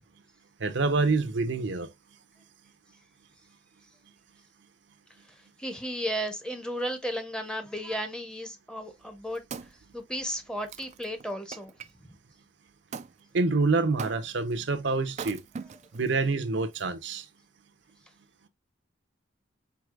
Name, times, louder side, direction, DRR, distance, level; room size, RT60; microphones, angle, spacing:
voice 1, 0.6-1.9 13.3-15.4 15.9-17.3, right 3 dB, 65° right, 0.7 m, -26 dB
voice 2, 5.3-9.4 9.9-11.7, equal, 5° left, 0.8 m, -34 dB
Wood, 8.9-11.9 12.9-13.1 14.0-14.5 15.1-16.1 16.7-16.8, right 6 dB, 35° right, 0.3 m, -42 dB
4.7 x 4.1 x 2.3 m
head